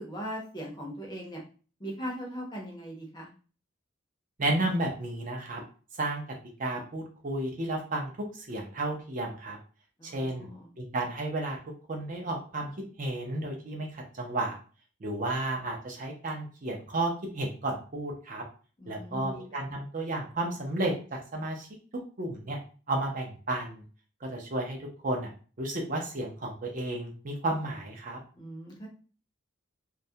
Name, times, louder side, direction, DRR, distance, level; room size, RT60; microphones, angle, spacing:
voice 1, 0.0-1.4 1.8-3.3 10.0-10.7 18.8-19.6 28.4-28.9, equal, 20° left, -1 dB, 0.6 m, -39 dB
voice 2, 4.4-5.6 6.0-6.2 6.6-9.6 10.0-10.5 10.8-11.6 11.9-12.7 13.0-14.6 15.0-18.5 18.9-21.7 22.2-22.6 22.9-23.8 24.2-25.3 25.6-28.2, right 2 dB, 40° right, 1 dB, 0.5 m, -32 dB
2.2 x 2.0 x 2.6 m, 0.37 s
head